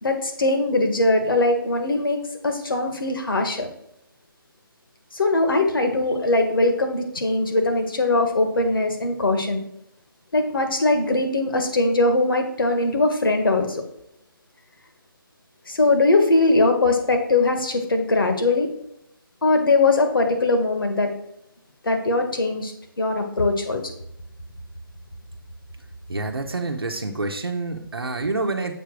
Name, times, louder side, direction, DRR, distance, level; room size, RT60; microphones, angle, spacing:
voice 1, 0.0-3.7 5.1-9.6 10.3-13.8 15.7-18.7 19.4-21.1 21.8-23.8, left 2 dB, 70° left, 5 dB, 1.6 m, -21 dB
voice 2, 26.1-28.7, right 3 dB, 90° right, 2 dB, 1.0 m, -27 dB
7.2 x 3.5 x 6.2 m, 0.78 s
figure-of-eight pair, 160°, 12 cm